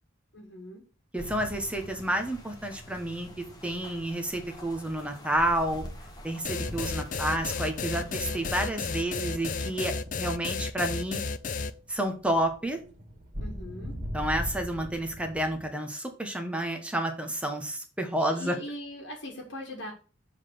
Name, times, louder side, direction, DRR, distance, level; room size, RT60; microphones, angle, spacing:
voice 1, 0.3-0.8 13.4-14.0 18.2-19.9, left 1 dB, 60° left, -1 dB, 1.7 m, -40 dB
voice 2, 1.1-5.8 6.2-11.2 11.9-12.8 14.1-18.6, right 1 dB, 5° right, 5 dB, 1.1 m, -30 dB
sound 1, 1.2-9.8, equal, 20° left, 1.4 m, -47 dB
sound 2, 6.4-11.7, left 4 dB, 40° left, 0.4 m, -32 dB
sound 3, 6.6-15.7, equal, 40° right, 2.3 m, -41 dB
7.3 x 4.0 x 6.7 m, 0.37 s
head